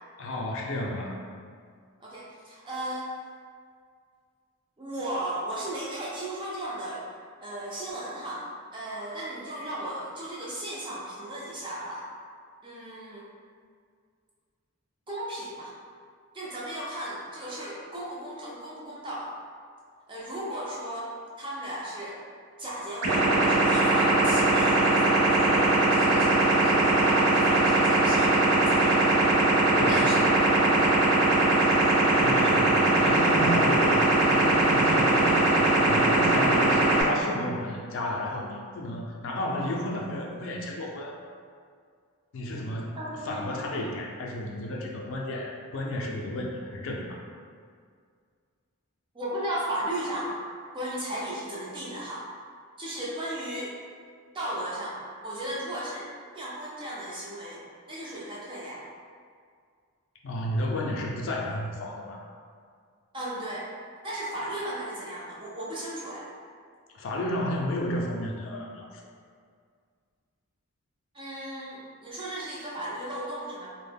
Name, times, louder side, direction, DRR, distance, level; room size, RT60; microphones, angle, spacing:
voice 1, 0.2-1.2 29.7-30.3 32.1-41.1 42.3-43.0 43.2-47.2 60.2-62.2 66.9-68.9, left 1 dB, 60° left, -1 dB, 0.3 m, -32 dB
voice 2, 2.0-3.1 4.8-7.1 7.4-8.5 8.7-12.1 12.6-13.3 15.1-15.7 16.3-19.3 20.1-22.2 22.6-29.2 29.9-31.0 33.4-33.5 43.0-43.4 49.1-50.3 50.7-52.3 52.8-53.7 54.3-56.1 56.3-57.6 57.9-58.8 63.1-63.7 64.0-66.3 71.1-73.7, right 1 dB, 20° right, -6 dB, 0.4 m, -35 dB
sound 1, 23.0-37.0, right 2 dB, 90° right, 0.5 m, -21 dB
2.1 x 2.0 x 3.3 m, 2.1 s
head